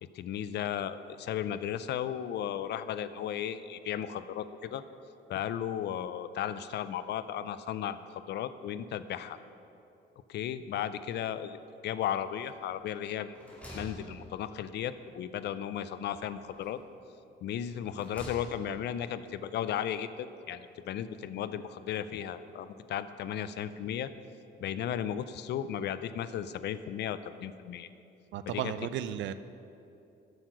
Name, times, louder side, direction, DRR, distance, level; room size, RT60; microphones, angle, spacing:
voice 1, 0.0-4.8 5.3-9.4 10.3-11.6 11.8-13.4 13.7-16.8 17.4-24.1 24.6-27.9 28.5-28.7, left 10 dB, 60° left, 13 dB, 0.4 m, -35 dB
sound 1, 12.4-12.9 13.2-14.8 16.0-16.9 17.6-18.9, equal, 5° left, 2.1 m, -48 dB
voice 2, 28.3-29.3, right 10 dB, 70° right, 13 dB, 0.4 m, -34 dB
7.7 x 6.5 x 6.0 m, 2.7 s
cardioid pair, 140°, 20 cm